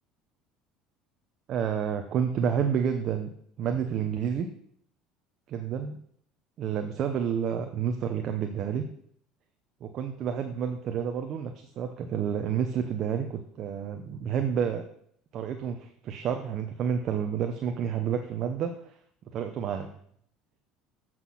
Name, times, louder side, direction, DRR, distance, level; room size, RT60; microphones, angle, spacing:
voice 1, 1.5-3.3 3.6-4.5 5.5-6.0 6.6-8.8 9.8-14.8 15.3-18.9 19.3-19.9, right 8 dB, 50° right, 5 dB, 0.8 m, -29 dB
8.2 x 6.1 x 5.7 m, 0.65 s
supercardioid pair, 100°, 0 cm